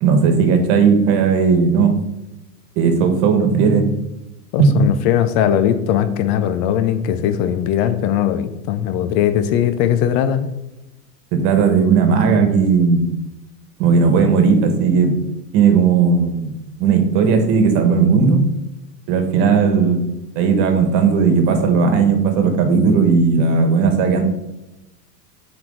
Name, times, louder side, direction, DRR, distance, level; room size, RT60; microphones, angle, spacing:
voice 1, 0.0-1.9 2.8-3.9 4.6-4.7 11.3-13.1 13.8-15.1 15.5-16.5 16.8-18.4 19.1-20.0 20.3-24.2, right 5 dB, 50° right, 6 dB, 1.6 m, -15 dB
voice 2, 4.5-10.5, left 10 dB, 45° left, 10 dB, 0.7 m, -19 dB
7.4 x 4.5 x 3.9 m, 0.95 s
hypercardioid pair, 105°, 49 cm